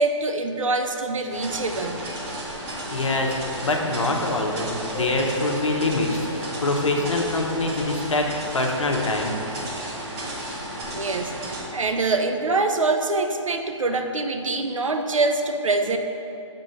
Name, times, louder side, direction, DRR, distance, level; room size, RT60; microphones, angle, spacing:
voice 1, 0.0-2.0 10.9-16.0, right 3 dB, 85° right, 5 dB, 0.6 m, -24 dB
sound 1, 1.3-11.6, right 1 dB, 30° right, 1.4 m, -33 dB
voice 2, 2.9-3.3 3.6-9.3, left 2 dB, 75° left, 1 dB, 0.9 m, -24 dB
sound 2, 4.9-7.2, right 1 dB, 30° left, 0.7 m, -35 dB
7.5 x 3.6 x 4.1 m, 2.9 s
figure-of-eight pair, 145°, 16 cm